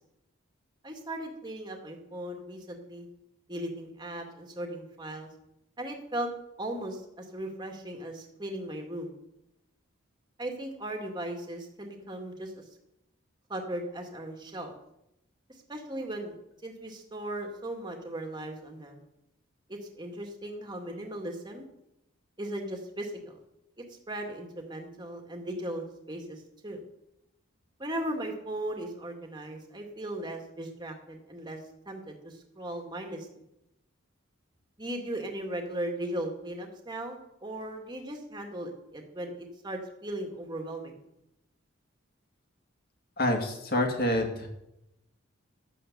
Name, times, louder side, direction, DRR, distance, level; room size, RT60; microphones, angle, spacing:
voice 1, 0.8-3.1 3.5-5.3 5.8-6.3 6.6-9.1 10.4-12.6 13.5-14.8 15.7-16.4 16.6-19.0 19.7-21.7 22.4-23.3 23.8-26.8 27.8-31.6 31.9-33.3 34.8-41.0, right 1 dB, 20° right, 2 dB, 2.2 m, -37 dB
voice 2, 43.2-44.5, left 1 dB, 45° left, 3 dB, 2.5 m, -27 dB
12.5 x 9.1 x 6.8 m, 0.85 s
head